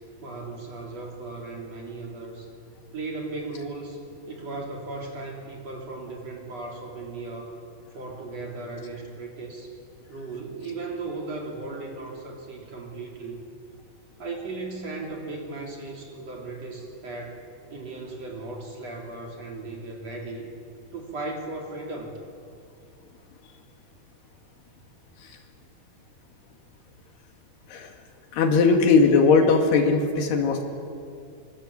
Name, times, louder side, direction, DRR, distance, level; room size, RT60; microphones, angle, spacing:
voice 1, 0.2-2.5 2.9-4.0 4.3-7.5 7.9-9.8 10.1-13.4 14.2-17.4 17.7-20.5 20.9-22.2, right 3 dB, 40° right, 0 dB, 4.1 m, -36 dB
voice 2, 28.3-30.6, left 4 dB, 75° left, 4 dB, 4.1 m, -19 dB
26.5 x 24.5 x 8.7 m, 2.5 s
omnidirectional pair, 4.8 m